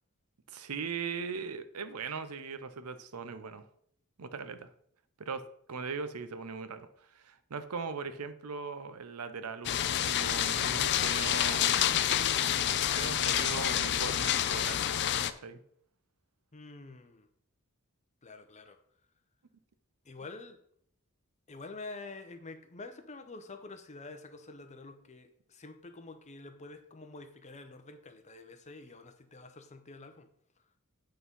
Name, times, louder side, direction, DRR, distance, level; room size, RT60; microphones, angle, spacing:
voice 1, 0.5-3.6 4.2-4.7 5.2-5.4 5.7-11.8 12.9-15.0 15.4-15.6, right 5 dB, 80° right, 11 dB, 0.7 m, -39 dB
sound 1, 9.7-15.3, left 10 dB, 50° left, 0.4 m, -28 dB
voice 2, 16.5-17.3 18.2-18.8 20.0-20.6 21.5-30.3, left 3 dB, 30° left, 7 dB, 0.8 m, -47 dB
8.5 x 3.9 x 5.4 m, 0.66 s
head